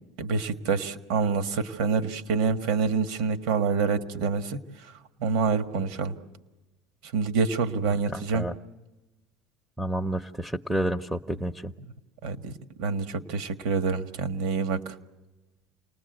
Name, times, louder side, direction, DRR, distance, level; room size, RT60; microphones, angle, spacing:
voice 1, 0.2-4.6 5.2-6.1 7.1-8.5 12.2-12.5 12.8-14.9, right 5 dB, 75° right, 8 dB, 1.6 m, -27 dB
voice 2, 7.8-8.5 9.8-11.7, right 1 dB, ahead, 9 dB, 0.8 m, -30 dB
28.5 x 20.0 x 8.0 m, 1.1 s
supercardioid pair, 125°, 0 cm